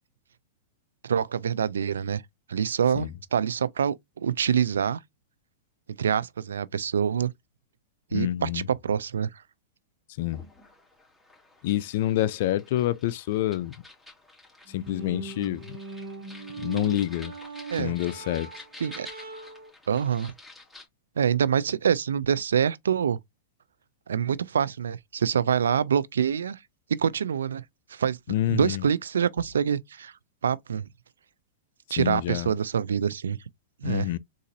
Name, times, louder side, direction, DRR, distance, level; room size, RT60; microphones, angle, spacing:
voice 1, 1.0-2.2 2.5-5.0 6.0-7.3 8.1-9.3 17.7-17.9 18.8-19.1 19.9-20.3 21.2-23.2 24.1-26.6 26.9-27.6 27.9-28.2 28.5-30.1 30.4-30.9 31.9-33.4 33.8-34.1, right 8 dB, 90° right, 0.3 m, -26 dB
voice 2, 8.1-8.6 10.2-10.4 11.6-13.7 14.7-15.6 16.6-17.3 17.8-18.5 28.3-28.8 32.0-32.5 33.8-34.2, left 14 dB, 60° left, 0.4 m, -27 dB
sound 1, 10.3-20.9, left 2 dB, ahead, 2.0 m, -50 dB
cello opennotes harmonics, 14.7-19.7, right 4 dB, 60° right, 1.2 m, -40 dB
3.9 x 2.5 x 2.6 m
hypercardioid pair, 125°, 0 cm